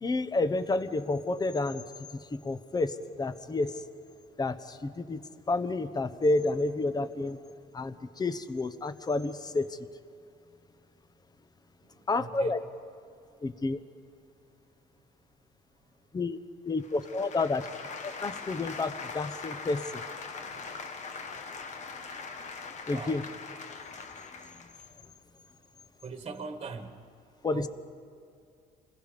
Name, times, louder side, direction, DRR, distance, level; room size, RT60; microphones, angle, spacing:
voice 1, 0.0-1.8 2.1-3.8 4.4-5.2 5.5-7.4 7.7-9.8 12.1-12.6 13.4-13.8 16.1-16.4 16.6-17.7 18.0-20.0 22.9-23.2 27.4-27.7, left 2 dB, 25° left, 11 dB, 1.1 m, -30 dB
voice 2, 12.2-12.6 20.4-20.6 22.9-23.2 26.0-27.0 27.5-27.7, right 4 dB, 35° right, 6 dB, 1.6 m, -41 dB
sound 1, 16.8-24.8, left 4 dB, 45° left, 1.5 m, -41 dB
29.0 x 21.0 x 5.3 m, 2.5 s
cardioid pair, 110°, 17 cm